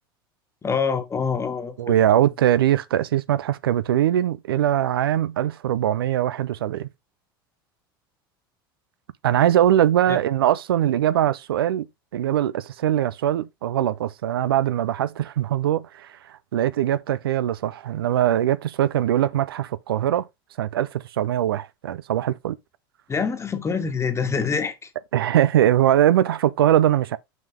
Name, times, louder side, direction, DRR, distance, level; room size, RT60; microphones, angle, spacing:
voice 1, 0.6-1.8 10.1-10.2 23.1-24.8, left 5 dB, 25° left, 1.6 m, -25 dB
voice 2, 1.8-6.9 9.2-11.9 12.1-16.1 16.5-20.3 20.6-22.6 25.1-27.2, right 11 dB, 85° right, 0.5 m, -21 dB
6.1 x 5.2 x 3.7 m
hypercardioid pair, 85°, 12 cm